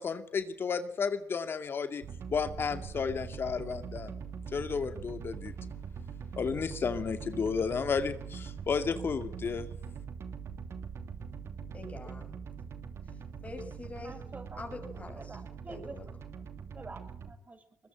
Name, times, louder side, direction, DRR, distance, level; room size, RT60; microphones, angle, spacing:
voice 1, 0.0-2.0 2.3-4.1 4.5-5.5 6.4-9.7, left 5 dB, 50° left, 9 dB, 2.2 m, -32 dB
sound 1, 2.0-17.3, right 6 dB, 65° right, 2.8 m, -42 dB
voice 2, 11.7-12.3 13.4-14.2 14.6-15.4 15.7-16.1, left 3 dB, 30° left, 5 dB, 6.1 m, -44 dB
voice 3, 14.0-16.0 16.4-16.5 16.7-17.6, right 3 dB, 30° right, 10 dB, 6.3 m, -48 dB
23.0 x 21.0 x 9.0 m, 0.63 s
cardioid pair, 70°, 5 cm